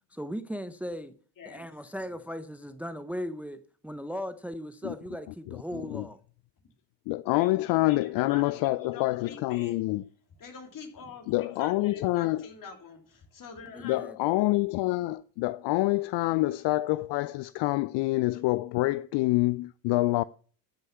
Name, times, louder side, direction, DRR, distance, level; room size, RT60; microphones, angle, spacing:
voice 1, 0.1-1.2 1.4-6.2 13.7-14.2, equal, 5° right, 0.7 m, -37 dB
voice 2, 1.4-1.7 2.1-2.2 7.2-9.8 10.4-14.0, left 5 dB, 50° left, 3.3 m, -46 dB
voice 3, 7.1-10.0 11.3-12.4 13.8-20.2, left 19 dB, 70° left, 0.5 m, -26 dB
12.5 x 6.5 x 5.7 m
supercardioid pair, 90°, 42 cm